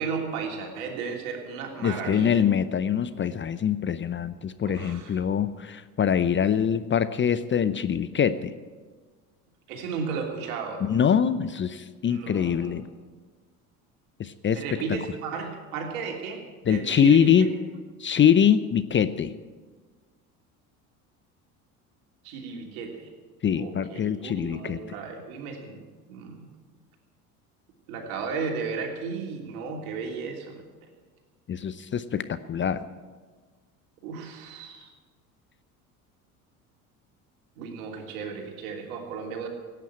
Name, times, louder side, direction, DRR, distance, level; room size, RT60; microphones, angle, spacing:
voice 1, 0.0-2.4 4.6-5.2 9.7-10.8 12.0-12.8 14.5-16.4 16.7-17.5 22.2-23.1 23.6-25.8 26.1-26.5 27.9-30.6 34.0-34.9 37.6-39.5, right 5 dB, 70° right, 2 dB, 3.2 m, -34 dB
voice 2, 1.8-8.5 10.8-12.9 14.2-14.6 16.7-17.5 18.0-19.3 23.4-24.8 31.5-32.8, left 8 dB, 25° left, 13 dB, 0.7 m, -24 dB
17.0 x 9.3 x 8.9 m, 1.4 s
hypercardioid pair, 65°, 44 cm